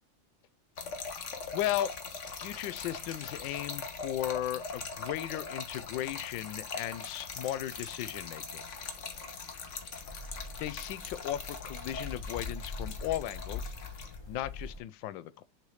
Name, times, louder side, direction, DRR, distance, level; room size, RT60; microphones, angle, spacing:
Trickle dribble / Fill (with liquid), 0.8-14.2, left 4 dB, 45° left, 1.1 m, -41 dB
voice 1, 1.5-1.9 2.4-8.6 10.6-13.7 14.3-15.4, left 13 dB, 80° left, 1.3 m, -36 dB
sound 1, 8.5-14.8, left 3 dB, 30° left, 0.5 m, -44 dB
6.6 x 3.2 x 4.8 m
omnidirectional pair, 2.0 m